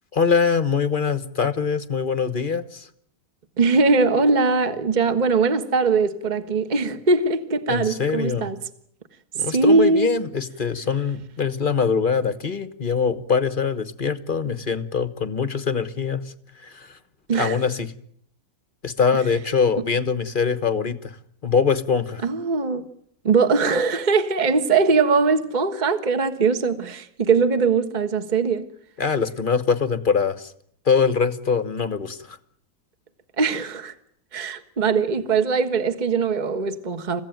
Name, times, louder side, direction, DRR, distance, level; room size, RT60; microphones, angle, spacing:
voice 1, 0.1-2.9 7.7-8.5 9.3-17.0 17.3-17.9 18.8-21.2 21.4-22.2 29.0-30.5 30.8-32.4, left 5 dB, 35° left, 1.2 m, -23 dB
voice 2, 3.6-8.6 9.5-10.1 17.3-17.6 22.2-22.9 23.2-28.6 33.4-33.9 34.3-37.2, right 4 dB, 25° right, 1.5 m, -21 dB
29.5 x 16.0 x 9.1 m
omnidirectional pair, 1.9 m